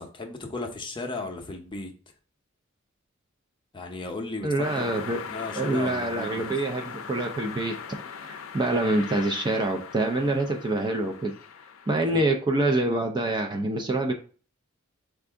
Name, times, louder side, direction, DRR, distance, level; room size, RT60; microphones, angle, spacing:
voice 1, 0.0-1.9 3.7-6.5 12.1-12.2, left 3 dB, 25° left, 2 dB, 0.6 m, -36 dB
voice 2, 4.4-5.2 5.6-7.8 8.2-11.3 11.9-14.1, right 2 dB, 20° right, 3 dB, 0.4 m, -26 dB
sound 1, 4.6-12.2, left 6 dB, 80° left, 0.5 m, -40 dB
4.6 x 2.5 x 3.4 m, 0.40 s
head